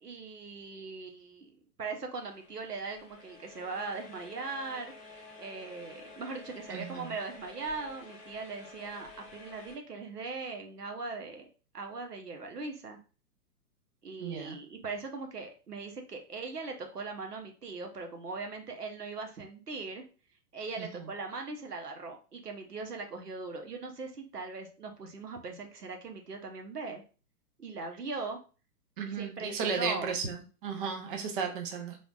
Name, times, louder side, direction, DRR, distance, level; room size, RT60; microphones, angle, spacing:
voice 1, 0.0-11.5 11.7-13.0 14.0-20.0 20.5-27.0 27.6-28.4 29.0-30.2, right 3 dB, 80° right, 3 dB, 1.0 m, -40 dB
sound 1, 2.1-9.8, left 3 dB, 15° left, 0.7 m, -51 dB
voice 2, 6.7-7.1 14.2-14.6 20.8-20.9 29.0-32.0, right 5 dB, 35° right, 4 dB, 0.7 m, -34 dB
3.9 x 3.4 x 2.4 m, 0.35 s
figure-of-eight pair, 115°, 46 cm